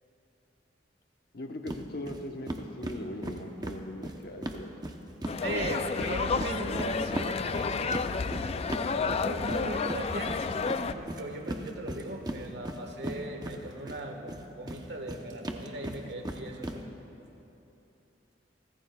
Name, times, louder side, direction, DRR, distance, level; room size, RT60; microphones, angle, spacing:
voice 1, 1.3-4.7, left 1 dB, 60° left, 4 dB, 1.1 m, -40 dB
sound 1, 1.7-1.8 2.1-2.2 2.5-5.4 5.6-14.0 14.3-16.8, right 1 dB, 25° right, 0.8 m, -37 dB
sound 2, 5.3-10.9, left 4 dB, 35° left, 0.3 m, -31 dB
voice 2, 5.4-7.9 9.1-16.9, right 1 dB, 65° right, 3 dB, 1.5 m, -38 dB
29.0 x 14.5 x 2.3 m, 3.0 s
head